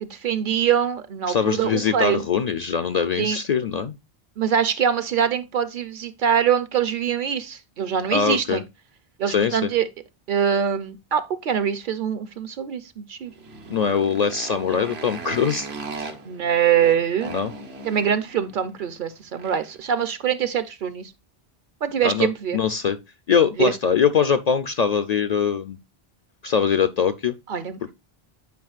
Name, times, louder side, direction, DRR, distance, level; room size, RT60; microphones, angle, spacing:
voice 1, 0.0-2.2 3.2-3.4 4.4-8.6 9.2-9.9 10.3-13.3 16.3-17.4 17.8-21.1 21.8-22.6 23.6-23.7 27.5-27.8, right 8 dB, 60° right, 0.7 m, -23 dB
voice 2, 1.3-3.9 8.1-8.6 9.3-9.7 13.7-15.7 16.0-16.1 17.3-17.5 22.0-23.0 23.3-25.8 26.4-27.3, left 6 dB, 55° left, 0.5 m, -22 dB
Motorcycle, 13.2-19.9, right 4 dB, 85° right, 1.3 m, -38 dB
9.3 x 5.0 x 2.4 m
omnidirectional pair, 1.0 m